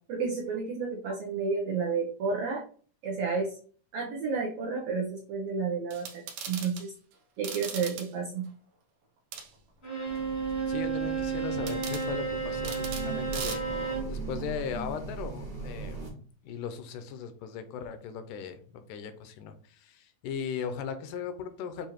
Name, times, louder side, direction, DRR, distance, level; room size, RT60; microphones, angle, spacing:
voice 1, 0.1-2.6 3.0-3.6 3.9-6.9 7.4-8.5, right 5 dB, 90° right, 0 dB, 1.3 m, -31 dB
sound 1, 5.9-6.8 7.4-8.1 9.3-9.5 11.7-12.1 12.6-13.1 13.3-13.5, right 7 dB, 70° right, 1.7 m, -39 dB
Bowed string instrument, 9.8-14.2, right 5 dB, 40° left, 0.8 m, -32 dB
sound 2, 10.0-16.1, right 3 dB, 40° right, 0.6 m, -39 dB
voice 2, 10.7-21.9, left 7 dB, 80° left, 9 dB, 2.1 m, -38 dB
6.7 x 2.5 x 2.9 m, 0.43 s
omnidirectional pair, 3.7 m